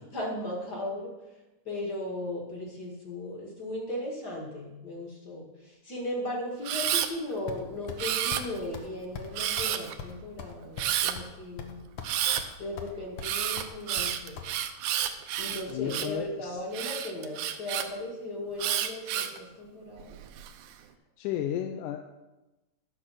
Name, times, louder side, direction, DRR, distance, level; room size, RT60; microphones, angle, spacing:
voice 1, 0.1-1.1 1.7-11.8 12.6-14.4 15.4-20.1, left 1 dB, 35° left, -1 dB, 2.0 m, -37 dB
Camera, 6.6-7.1 8.0-8.7 9.4-9.9 10.8-11.1 12.0-12.4 13.2-16.2 16.7-17.9 18.6-19.4 20.0-20.5, right 11 dB, 80° right, 2.2 m, -30 dB
sound 1, 7.5-8.0 8.3-8.5 8.7-8.9 9.1-9.3 9.6-9.7 10.0-11.3 11.6-12.1 12.4-12.9 13.2-14.5, left 6 dB, 65° left, 1.5 m, -40 dB
voice 2, 15.7-16.6 21.2-22.0, left 10 dB, 90° left, 5 dB, 2.2 m, -33 dB
11.0 x 6.6 x 5.7 m, 1.0 s
omnidirectional pair, 3.6 m